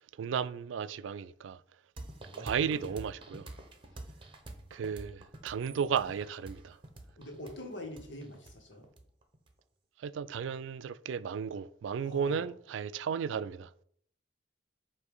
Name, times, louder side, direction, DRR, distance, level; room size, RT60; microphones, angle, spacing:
voice 1, 0.2-1.6 2.4-3.5 4.7-6.8 10.0-13.7, right 7 dB, 80° right, 0.3 m, -34 dB
sound 1, 2.0-9.5, right 1 dB, 25° right, 1.0 m, -47 dB
voice 2, 7.2-8.8 12.0-12.4, left 1 dB, 65° left, 1.5 m, -44 dB
8.1 x 2.8 x 5.4 m
head